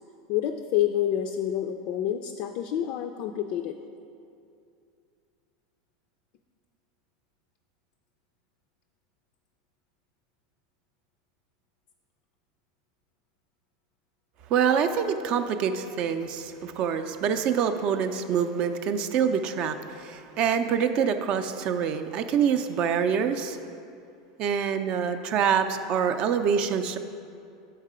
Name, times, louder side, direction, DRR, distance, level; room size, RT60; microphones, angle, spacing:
voice 1, 0.3-3.8, left 11 dB, 55° left, 6 dB, 0.3 m, -28 dB
voice 2, 14.5-23.6 24.4-27.0, right 7 dB, 45° right, 8 dB, 0.4 m, -26 dB
6.5 x 4.7 x 4.9 m, 2.5 s
hypercardioid pair, 110°, 2 cm